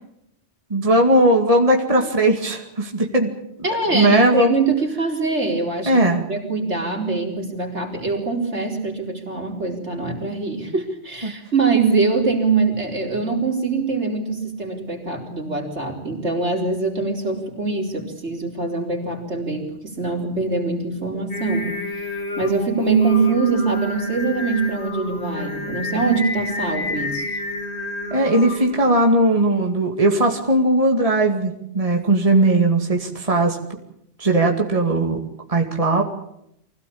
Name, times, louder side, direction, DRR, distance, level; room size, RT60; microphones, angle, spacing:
voice 1, 0.7-3.3 3.9-4.5 5.9-6.2 11.2-11.3 28.1-33.6 34.2-35.2 35.5-36.0, right 1 dB, 30° right, 2 dB, 2.4 m, -18 dB
voice 2, 3.6-21.7 22.4-27.2, right 4 dB, 80° right, 1 dB, 4.7 m, -23 dB
Singing, 21.3-28.9, left 2 dB, 70° left, 3.5 m, -30 dB
24.5 x 17.0 x 8.6 m, 0.77 s
omnidirectional pair, 1.2 m